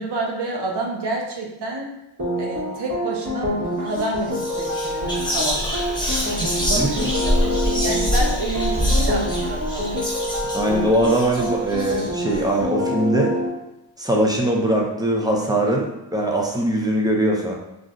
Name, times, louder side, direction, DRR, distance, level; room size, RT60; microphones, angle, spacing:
voice 1, 0.0-1.9 2.4-5.7 6.6-9.9, right 2 dB, 65° right, 0 dB, 0.8 m, -29 dB
sound 1, 2.2-13.5, left 1 dB, 35° right, 1.0 m, -27 dB
Whispering, 3.9-4.0 4.3-12.4, equal, 10° left, 0.9 m, -25 dB
voice 2, 6.7-7.1 10.5-13.3 14.0-17.5, right 1 dB, 10° right, -1 dB, 0.5 m, -21 dB
2.5 x 2.0 x 3.7 m, 0.91 s
cardioid pair, 70°, 44 cm